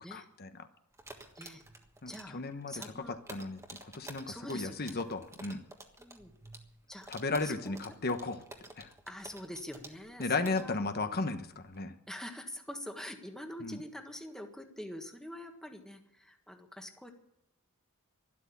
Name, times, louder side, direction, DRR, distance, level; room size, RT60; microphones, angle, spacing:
voice 1, 0.1-0.5 2.0-5.7 7.1-8.4 8.8-8.9 10.2-11.9 13.6-13.8, left 3 dB, 45° left, 9 dB, 1.1 m, -35 dB
sound 1, 0.9-11.8, right 2 dB, 15° right, 1.5 m, -51 dB
voice 2, 2.1-3.2 4.2-5.0 6.0-6.3 6.9-7.1 7.4-7.6 9.1-10.8 12.1-17.1, left 1 dB, 5° left, 4 dB, 1.6 m, -45 dB
12.5 x 12.0 x 8.5 m, 0.84 s
head